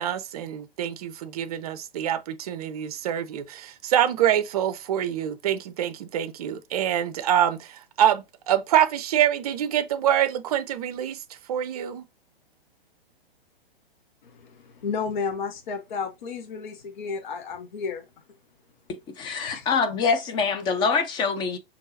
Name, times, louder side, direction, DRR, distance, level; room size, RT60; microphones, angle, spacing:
voice 1, 0.0-11.2 11.5-12.0, right 10 dB, 40° right, 0.5 m, -25 dB
voice 2, 14.2-18.1 19.2-19.7, left 5 dB, 50° left, 0.8 m, -32 dB
voice 3, 18.9-21.6, left 5 dB, 15° left, 0.5 m, -25 dB
5.4 x 2.8 x 2.6 m
figure-of-eight pair, 115°, 30 cm